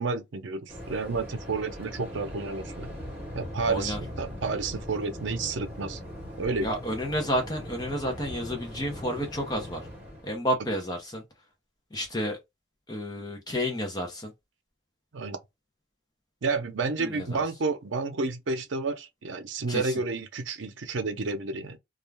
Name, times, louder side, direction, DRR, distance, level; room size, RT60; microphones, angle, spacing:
voice 1, 0.0-2.9 3.3-6.0 6.4-6.7 15.1-15.4 16.4-21.8, right 4 dB, 80° right, 0.6 m, -30 dB
Waves surf, 0.7-10.4, equal, 10° right, 1.1 m, -40 dB
voice 2, 3.7-4.0 6.6-9.8 10.2-11.2 11.9-12.4 12.9-14.3 17.0-17.4 19.7-20.0, equal, 20° left, 0.6 m, -31 dB
2.4 x 2.1 x 3.2 m
head